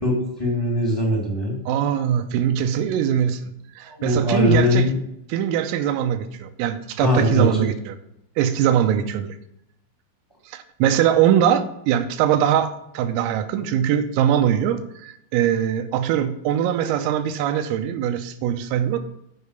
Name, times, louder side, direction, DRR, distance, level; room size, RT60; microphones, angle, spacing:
voice 1, 0.4-1.5 3.9-4.9 7.0-7.5, left 1 dB, 35° left, -3 dB, 0.4 m, -20 dB
voice 2, 1.7-3.4 3.8-4.9 5.3-8.0 8.4-9.3 10.5-19.0, right 9 dB, 90° right, 8 dB, 3.4 m, -22 dB
8.4 x 4.8 x 6.7 m, 0.81 s
omnidirectional pair, 5.8 m